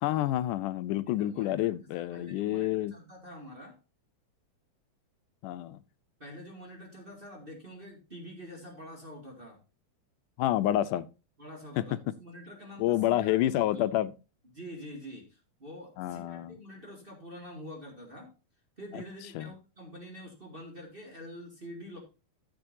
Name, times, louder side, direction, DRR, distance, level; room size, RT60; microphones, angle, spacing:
voice 1, 0.0-2.9 5.4-5.8 10.4-11.1 11.8-11.9 12.8-14.1 16.0-16.6 18.9-19.0 19.4-19.5, left 13 dB, 85° left, 2.1 m, -28 dB
voice 2, 1.2-3.8 6.2-9.6 11.4-13.9 14.5-18.3 18.8-22.0, equal, 20° right, 1.9 m, -46 dB
14.0 x 6.9 x 2.7 m
omnidirectional pair, 3.6 m